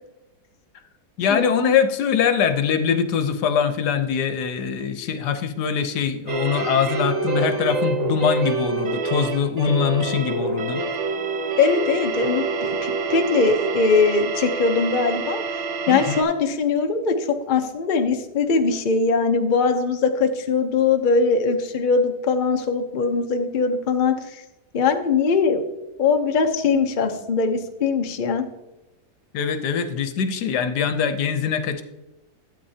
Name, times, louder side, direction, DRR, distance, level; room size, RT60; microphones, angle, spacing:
voice 1, 1.2-10.8 15.9-16.2 29.3-31.8, left 7 dB, 75° left, 9 dB, 1.3 m, -23 dB
sound 1, 6.3-16.2, right 4 dB, 50° right, 0.4 m, -26 dB
voice 2, 11.6-15.4 15.9-24.4 24.7-25.7 26.0-28.4, left 4 dB, 45° left, 5 dB, 0.7 m, -21 dB
12.0 x 8.4 x 2.8 m, 1.0 s
omnidirectional pair, 1.8 m